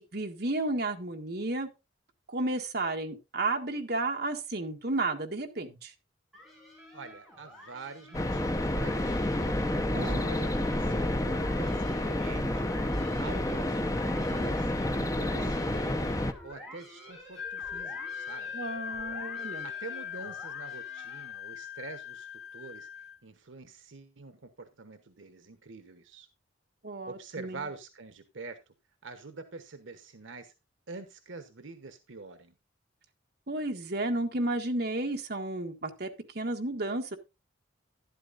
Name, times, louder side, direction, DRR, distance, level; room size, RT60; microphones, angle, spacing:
voice 1, 0.1-1.7 2.3-5.9 9.9-10.3 18.5-19.7 26.8-27.6 33.5-36.1 36.3-37.2, right 2 dB, 50° right, 1.6 m, -32 dB
sound 1, 6.3-21.5, equal, ahead, 5.2 m, -50 dB
voice 2, 6.9-9.6 10.0-12.7 13.2-16.0 16.4-18.5 19.6-22.9 23.2-26.3 27.1-28.6 29.0-30.5 30.9-32.5, right 3 dB, 75° right, 1.1 m, -46 dB
sound 2, 8.1-16.3, left 1 dB, 15° left, 0.8 m, -29 dB
Wind instrument woodwind instrument, 17.4-23.2, left 8 dB, 60° left, 2.6 m, -40 dB
12.0 x 11.5 x 2.5 m
head